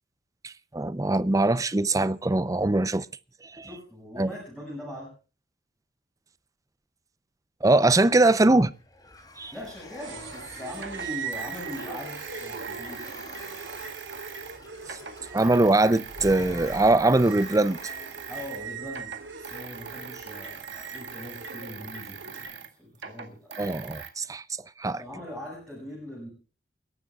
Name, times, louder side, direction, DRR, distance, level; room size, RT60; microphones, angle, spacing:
voice 1, 0.4-3.1 3.4-3.7 4.2-4.3 7.6-8.7 9.4-9.5 14.9-15.0 15.3-17.8 23.6-24.4 24.8-25.0, right 2 dB, 20° right, 0.5 m, -22 dB
voice 2, 3.6-5.2 9.5-13.1 18.3-23.5 24.9-26.3, left 1 dB, 5° left, 6.1 m, -41 dB
sound 1, 8.5-18.4, left 1 dB, 20° left, 3.0 m, -47 dB
sound 2, 9.6-9.7 10.7-14.6 14.8-18.6 18.9-24.1, right 6 dB, 65° right, 1.9 m, -42 dB
sound 3, 10.0-22.5, right 5 dB, 90° right, 2.9 m, -41 dB
29.0 x 11.5 x 2.4 m
head